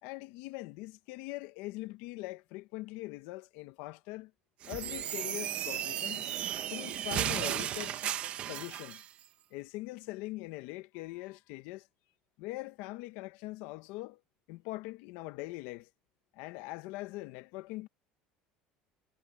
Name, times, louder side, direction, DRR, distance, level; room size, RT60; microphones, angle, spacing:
voice 1, 0.0-4.3 4.6-6.2 6.7-8.2 8.5-9.0 9.5-11.9 12.4-14.2 14.5-15.9 16.3-17.9, left 20 dB, 75° left, 0.8 m, -42 dB
sound 1, 4.6-9.1, right 11 dB, 40° right, 0.9 m, -35 dB
cardioid pair, 170°, 3 cm